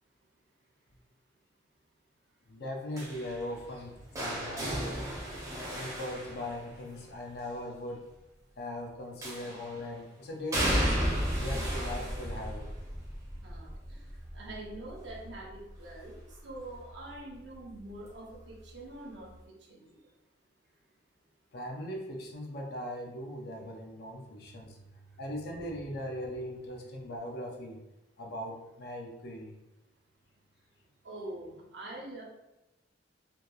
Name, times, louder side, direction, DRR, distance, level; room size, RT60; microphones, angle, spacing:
voice 1, 2.5-5.2 5.7-8.0 8.6-11.0 11.4-12.7 21.5-24.8 25.2-27.8 28.2-29.6, left 1 dB, 55° left, 1 dB, 0.4 m, -39 dB
sound 1, 3.0-7.0 9.2-9.8 10.5-16.3 16.7-17.1 18.3-18.4, equal, 15° right, 0.5 m, -34 dB
voice 2, 13.4-14.0 14.3-19.4 19.7-20.0 31.0-32.2, right 1 dB, 65° right, -2 dB, 0.7 m, -45 dB
2.8 x 2.2 x 2.2 m, 0.94 s
head